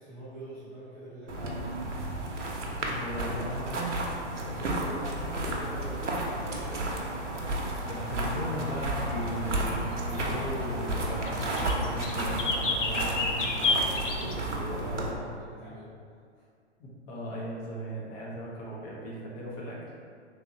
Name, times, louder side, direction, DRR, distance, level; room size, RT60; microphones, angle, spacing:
voice 1, 0.0-1.8 4.3-7.3 13.6-15.9, right 1 dB, 5° left, -15 dB, 0.3 m, -43 dB
sound 1, 1.3-15.1, right 1 dB, 85° right, 0.7 m, -32 dB
voice 2, 2.6-4.0 7.9-13.3 16.8-19.8, equal, 25° left, -5 dB, 0.8 m, -37 dB
sound 2, 5.1-14.3, left 3 dB, 85° left, 0.6 m, -32 dB
3.8 x 3.0 x 2.8 m, 2.2 s
figure-of-eight pair, 115°, 35 cm